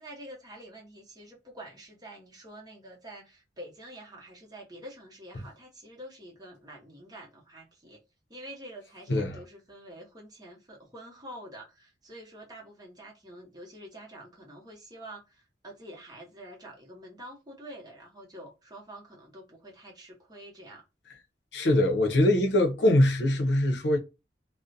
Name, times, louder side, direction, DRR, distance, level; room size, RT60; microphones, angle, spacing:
voice 1, 0.0-8.0 8.3-20.8, right 1 dB, 20° right, 0.8 m, -47 dB
voice 2, 9.1-9.4 21.5-24.0, left 1 dB, 75° left, 0.6 m, -23 dB
2.4 x 2.1 x 2.6 m
head